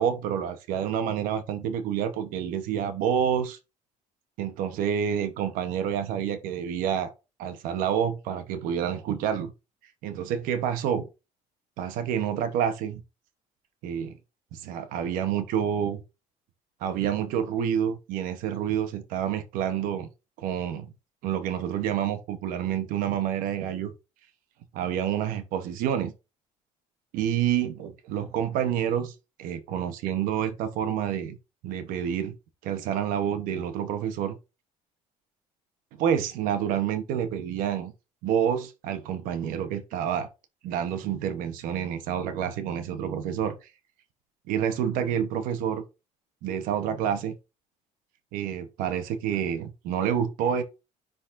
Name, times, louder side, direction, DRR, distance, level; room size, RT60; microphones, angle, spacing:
voice 1, 0.0-3.6 4.4-7.1 7.4-9.5 10.0-11.1 11.8-13.0 13.8-14.1 14.5-16.0 16.8-20.1 20.4-20.9 21.2-23.9 24.7-26.1 27.1-29.1 29.4-31.4 31.6-32.3 32.6-34.4 36.0-37.9 38.2-40.3 40.6-43.6 44.5-45.8 46.4-47.3 48.3-50.6, right 9 dB, 80° right, 1.0 m, -28 dB
10.0 x 4.0 x 2.6 m
cardioid pair, 160°, 14 cm